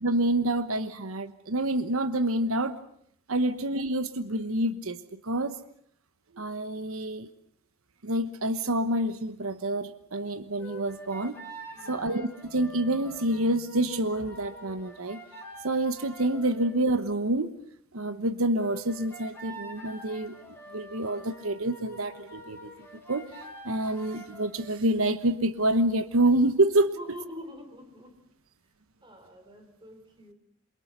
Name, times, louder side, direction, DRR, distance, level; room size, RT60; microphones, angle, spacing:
voice 1, 0.0-2.7 3.3-5.6 6.4-7.3 8.0-11.4 11.9-15.2 15.6-17.5 17.9-20.3 20.7-22.7 23.1-26.9, right 1 dB, 85° right, 12 dB, 1.2 m, -27 dB
sound 1, 10.6-16.8 18.6-24.8, right 1 dB, 10° left, 5.3 m, -46 dB
voice 2, 11.7-12.1 26.9-28.3 29.0-30.3, left 1 dB, 20° right, 6 dB, 4.0 m, -45 dB
28.0 x 23.0 x 6.7 m, 0.67 s
head